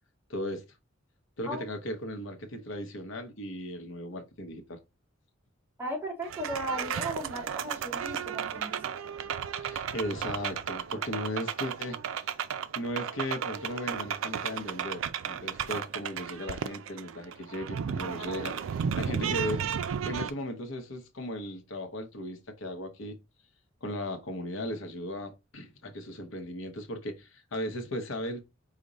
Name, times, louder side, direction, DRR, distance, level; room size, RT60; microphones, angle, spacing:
voice 1, 0.3-0.6 1.4-4.8 9.6-12.3 12.8-19.7 20.0-23.2 23.8-28.4, left 1 dB, 75° left, 0.8 m, -37 dB
voice 2, 5.8-8.8, right 1 dB, 10° right, 1.7 m, -36 dB
sound 1, 6.2-20.3, right 7 dB, 75° right, 0.4 m, -34 dB
4.9 x 2.1 x 4.0 m
head